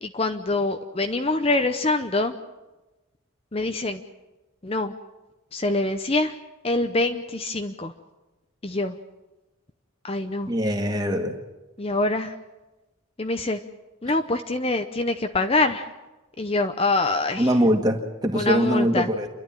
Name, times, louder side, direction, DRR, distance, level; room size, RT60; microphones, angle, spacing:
voice 1, 0.0-2.3 3.5-4.0 4.6-4.9 5.5-6.3 6.6-7.9 8.6-8.9 10.0-10.5 11.8-12.3 13.2-13.6 14.0-15.8 16.4-17.5 18.3-19.1, left 2 dB, 25° left, 7 dB, 0.7 m, -24 dB
voice 2, 10.5-11.4 17.4-19.3, equal, 20° right, 3 dB, 2.0 m, -22 dB
29.0 x 12.0 x 9.1 m, 1.1 s
head